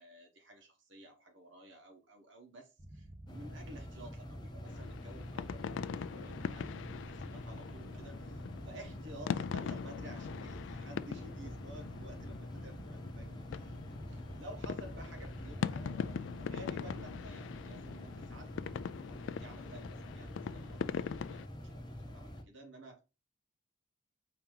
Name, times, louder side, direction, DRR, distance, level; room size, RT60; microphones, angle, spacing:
voice 1, 0.0-18.5 19.1-23.0, right 1 dB, 80° right, 1.2 m, -53 dB
sound 1, 2.8-17.3, right 1 dB, 20° right, 0.7 m, -52 dB
sound 2, 3.3-22.4, left 1 dB, 25° left, 0.7 m, -47 dB
sound 3, 4.6-21.5, left 7 dB, 80° left, 0.3 m, -42 dB
4.7 x 2.9 x 3.7 m
head